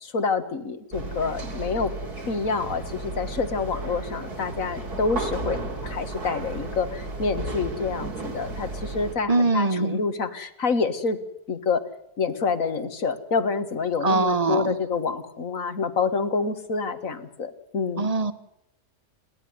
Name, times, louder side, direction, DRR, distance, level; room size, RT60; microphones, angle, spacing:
voice 1, 0.0-1.9 2.3-11.2 11.5-11.8 12.2-18.1, left 4 dB, 60° left, 10 dB, 2.0 m, -27 dB
sound 1, 0.9-9.2, right 2 dB, 85° right, 3.8 m, -34 dB
voice 2, 9.3-10.0 14.0-14.8 18.0-18.3, right 3 dB, 25° right, 12 dB, 1.3 m, -23 dB
28.5 x 11.5 x 9.5 m, 0.78 s
omnidirectional pair, 1.6 m